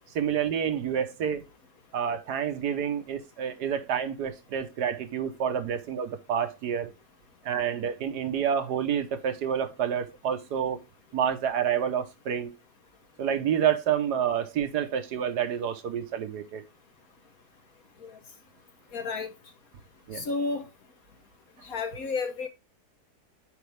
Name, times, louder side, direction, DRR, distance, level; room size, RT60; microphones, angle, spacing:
voice 1, 0.1-1.4 1.9-6.9 7.4-10.8 11.1-12.5 13.2-16.6 20.1-20.3, right 8 dB, 80° right, 1.5 m, -28 dB
voice 2, 18.9-19.3 20.1-20.6 21.6-22.5, left 4 dB, 60° left, 1.4 m, -31 dB
8.3 x 5.2 x 3.3 m
omnidirectional pair, 1.7 m